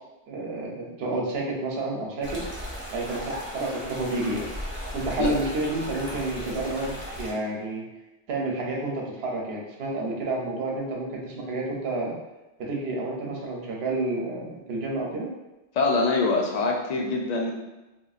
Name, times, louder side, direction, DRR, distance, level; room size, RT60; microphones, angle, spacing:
voice 1, 0.3-2.4 2.9-4.4 4.9-7.8 8.3-12.2 12.6-15.3, right 2 dB, 70° right, -1 dB, 0.9 m, -30 dB
sound 1, 2.2-7.3, equal, 15° right, 0.6 m, -36 dB
voice 2, 15.7-17.5, left 3 dB, 55° left, 0 dB, 0.4 m, -24 dB
3.0 x 2.5 x 2.4 m, 1.0 s
omnidirectional pair, 1.2 m